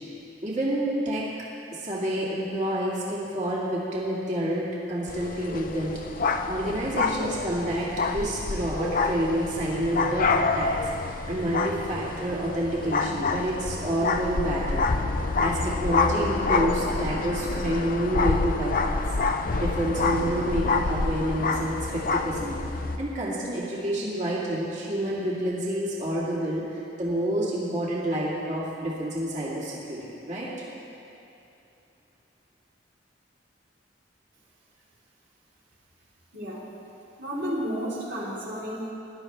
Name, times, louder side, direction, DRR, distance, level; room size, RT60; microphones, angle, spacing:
voice 1, 0.4-1.2 1.7-5.9 6.4-10.8 11.0-15.0 15.4-19.0 19.5-22.6 23.0-30.5, right 1 dB, 40° right, -6 dB, 2.3 m, -28 dB
sound 1, 5.1-23.0, left 3 dB, 50° left, 0.6 m, -27 dB
voice 2, 36.3-36.7 37.2-38.9, equal, 75° right, -8 dB, 3.6 m, -32 dB
20.5 x 12.0 x 3.4 m, 2.8 s
head